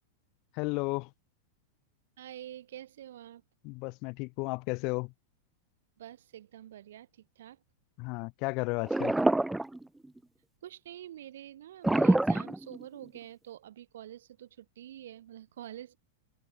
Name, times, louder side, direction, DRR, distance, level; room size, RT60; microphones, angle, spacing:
voice 1, 0.5-1.1 3.6-5.1 8.0-9.1, left 29 dB, 45° left, 2.3 m, -33 dB
voice 2, 2.2-3.4 6.0-7.6 10.6-16.0, right 12 dB, 65° right, 5.8 m, -47 dB
sound 1, 8.8-10.2 11.8-13.2, right 2 dB, 5° right, 0.6 m, -26 dB
figure-of-eight pair, 95°, 0 cm